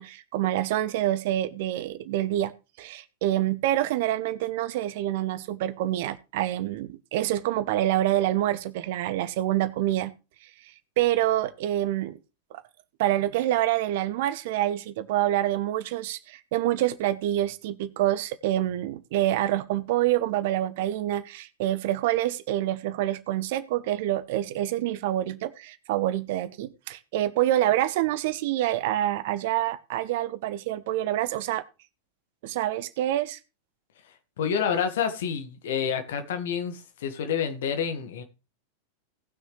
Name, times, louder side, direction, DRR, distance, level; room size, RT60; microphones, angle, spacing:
voice 1, 0.0-2.5 2.8-10.1 10.6-12.2 12.5-12.6 13.0-31.6 32.4-33.4, right 13 dB, 50° right, 0.8 m, -27 dB
voice 2, 34.4-38.2, left 7 dB, 60° left, 1.7 m, -28 dB
18.0 x 6.4 x 3.3 m
figure-of-eight pair, 90°, 0 cm